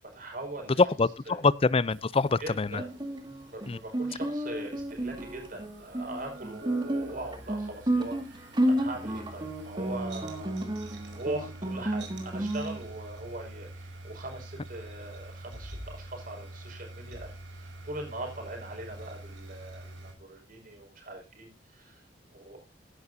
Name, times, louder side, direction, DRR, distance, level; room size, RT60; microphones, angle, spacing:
voice 1, 0.1-0.8 1.3-1.4 2.4-2.9 3.5-10.7 11.1-22.0 22.3-22.6, right 2 dB, 50° right, 5.7 m, -41 dB
voice 2, 0.8-2.8 3.7-3.8, left 4 dB, 30° left, 0.5 m, -25 dB
sound 1, 1.9-20.1, right 1 dB, 85° right, 4.4 m, -46 dB
Guitar, 2.8-12.8, right 1 dB, 25° right, 2.1 m, -32 dB
16.5 x 11.0 x 2.7 m
head